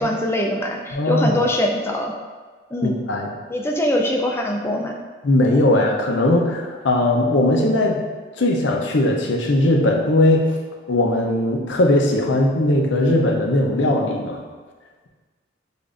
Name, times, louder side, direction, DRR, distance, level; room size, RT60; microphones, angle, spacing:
voice 1, 0.0-2.1 2.7-3.0 3.5-5.0, left 1 dB, 10° left, 1 dB, 0.3 m, -23 dB
voice 2, 0.9-1.4 2.8-3.3 5.2-8.0 8.4-10.6 10.9-14.4, left 1 dB, 70° left, 1 dB, 0.6 m, -19 dB
6.8 x 2.5 x 2.5 m, 1.4 s
head